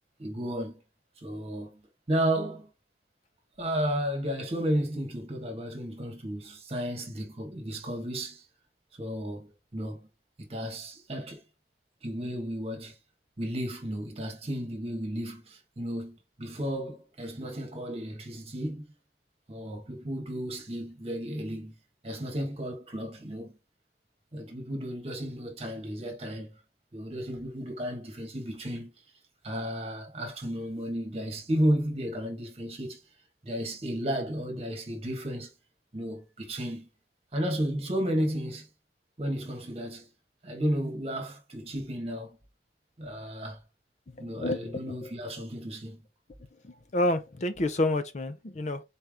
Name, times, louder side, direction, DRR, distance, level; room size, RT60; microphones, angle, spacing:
voice 1, 0.2-0.8 1.2-1.8 2.1-2.7 3.6-8.5 9.0-10.1 10.4-11.4 12.0-13.0 13.4-18.9 19.5-21.7 22.0-23.5 24.3-26.6 26.9-28.9 29.4-33.0 33.4-35.5 35.9-36.9 37.3-38.7 39.2-40.1 40.4-42.4 43.0-43.6 44.2-46.0, equal, 35° right, 1.4 m, -33 dB
voice 2, 44.2-45.0 46.6-48.8, left 2 dB, 40° left, 0.5 m, -29 dB
4.3 x 3.4 x 3.6 m
head